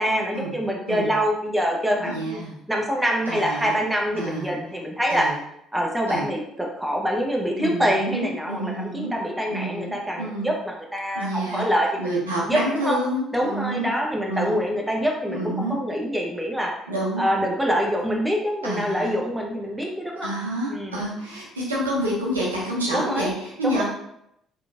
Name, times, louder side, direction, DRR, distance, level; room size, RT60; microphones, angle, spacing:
voice 1, 0.0-5.3 5.7-12.1 12.4-13.0 13.3-16.7 17.2-20.3 20.7-21.0 22.9-23.3 23.6-23.8, equal, 5° right, 0 dB, 0.6 m, -25 dB
voice 2, 2.0-2.5 3.3-3.8 4.1-4.5 5.1-5.4 6.1-6.3 7.6-9.1 9.5-9.9 10.2-10.5 11.1-11.7 12.0-13.9 14.3-14.6 15.3-15.7 16.9-17.2 18.6-19.2 20.2-23.8, right 1 dB, 90° right, -5 dB, 0.6 m, -28 dB
2.9 x 2.2 x 2.5 m, 0.77 s
hypercardioid pair, 50°, 0 cm